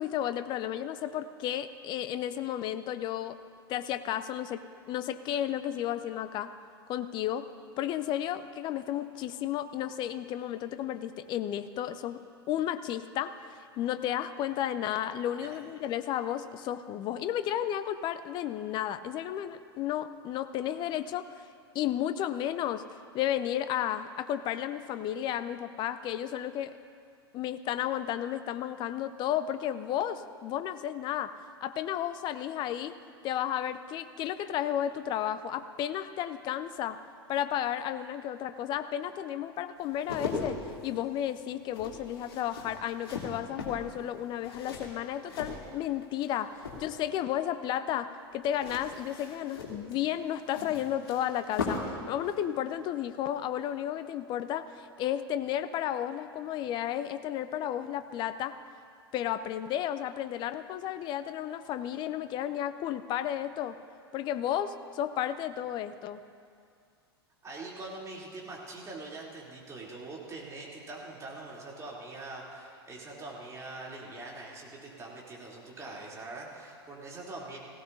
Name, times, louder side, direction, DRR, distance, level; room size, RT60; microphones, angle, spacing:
voice 1, 0.0-3.4 3.7-6.5 6.9-7.5 7.8-12.2 12.5-21.5 21.7-22.8 23.1-26.7 27.3-31.3 31.6-32.9 33.2-37.0 37.3-46.5 46.8-58.6 59.1-63.8 64.1-66.2, left 11 dB, 35° left, 12 dB, 0.6 m, -33 dB
sound 1, 39.8-46.3 46.6-47.2 48.5-52.0 52.3-52.4, left 4 dB, 70° left, 2.4 m, -39 dB
voice 2, 67.4-77.6, right 2 dB, 20° right, -4 dB, 3.2 m, -43 dB
18.0 x 16.0 x 2.7 m, 2.3 s
figure-of-eight pair, 85°, 13 cm